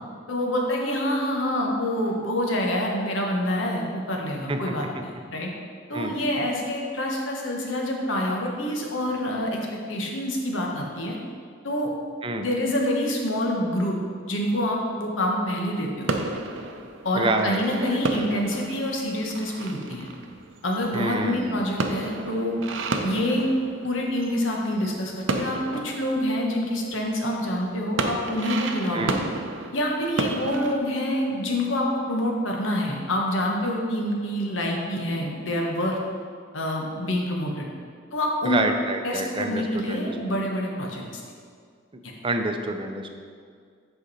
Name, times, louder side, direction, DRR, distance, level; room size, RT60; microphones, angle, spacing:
voice 1, 0.3-5.5 5.9-9.6 9.9-11.2 11.6-11.9 12.4-14.0 14.3-16.1 17.0-20.1 20.6-22.6 23.0-23.5 23.8-25.6 25.8-29.2 29.7-36.0 36.5-37.7 38.1-38.6 39.0-41.2, left 1 dB, 90° left, 0 dB, 1.2 m, -26 dB
sound 1, 16.1-24.4 24.7-27.3 27.7-30.8, right 2 dB, 70° right, 0.6 m, -32 dB
voice 2, 17.1-18.0 20.9-21.6 28.9-29.2 38.4-40.1 42.2-43.1, right 2 dB, 25° right, 5 dB, 0.5 m, -27 dB
8.0 x 5.0 x 4.1 m, 2.1 s
head